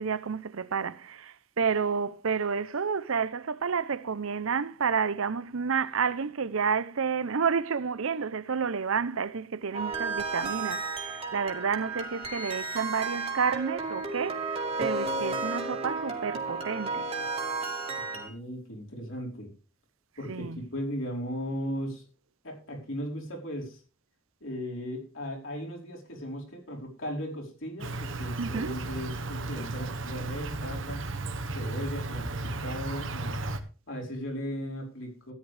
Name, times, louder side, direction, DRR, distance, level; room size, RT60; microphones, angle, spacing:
voice 1, 0.0-17.1 20.3-20.6 28.4-28.8, right 6 dB, 90° right, 0.7 m, -30 dB
sound 1, 9.7-18.3, right 4 dB, 30° right, 2.3 m, -33 dB
voice 2, 18.1-19.5 20.2-22.0 22.4-23.8 24.4-31.0 31.4-33.4 33.9-35.3, equal, 70° left, 4.8 m, -37 dB
Insect, 27.8-33.6, right 2 dB, 70° right, 1.2 m, -34 dB
14.0 x 10.5 x 3.3 m
head